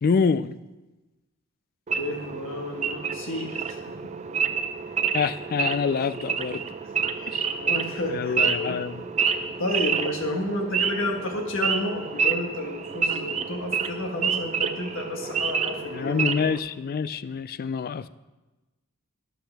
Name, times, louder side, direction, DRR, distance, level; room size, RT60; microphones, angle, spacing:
voice 1, 0.0-0.5 5.1-6.6 7.3-7.5 8.1-9.0 15.9-18.1, left 5 dB, 45° left, 15 dB, 0.3 m, -26 dB
Wild animals / Idling, 1.9-16.6, right 6 dB, 35° right, 0.5 m, -28 dB
voice 2, 2.0-3.8 7.2-7.3 7.6-9.1 9.6-16.2, left 1 dB, 65° left, 3 dB, 1.5 m, -31 dB
12.0 x 9.9 x 3.4 m, 1.1 s
head